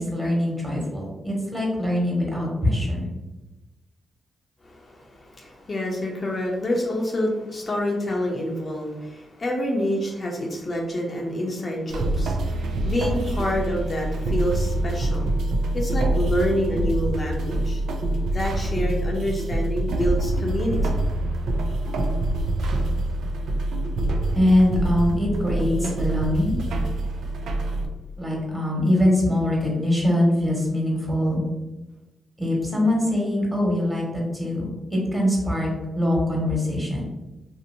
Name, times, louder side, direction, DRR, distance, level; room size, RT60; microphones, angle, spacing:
voice 1, 0.0-3.1 24.3-26.6 28.2-31.4 32.4-35.7 36.0-37.0, left 1 dB, 20° right, -3 dB, 1.4 m, -23 dB
voice 2, 4.6-15.3 15.7-17.8 18.3-21.0, left 1 dB, 45° left, -1 dB, 0.6 m, -27 dB
sound 1, 11.9-27.8, right 2 dB, 80° right, 0.4 m, -25 dB
2.8 x 2.7 x 2.7 m, 1.1 s
supercardioid pair, 55°, 0 cm